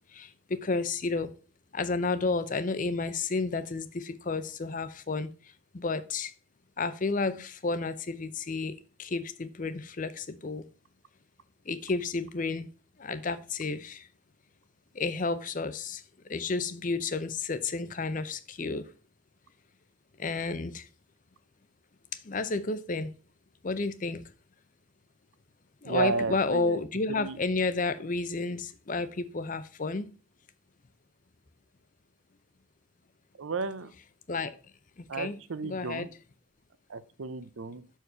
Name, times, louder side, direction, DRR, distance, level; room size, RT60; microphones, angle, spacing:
voice 1, 0.1-1.3 1.7-5.3 5.7-6.3 6.8-10.7 11.7-12.7 13.0-14.1 14.9-16.0 16.3-18.9 20.2-20.9 22.1-23.1 23.6-24.2 25.8-30.1 34.3-34.6 35.0-35.4 35.6-36.1, left 3 dB, 40° left, 0.6 m, -31 dB
voice 2, 25.8-26.8 27.1-27.4 33.4-33.9 35.1-36.1 36.9-37.8, right 4 dB, 75° right, 0.6 m, -32 dB
6.5 x 4.6 x 5.6 m
head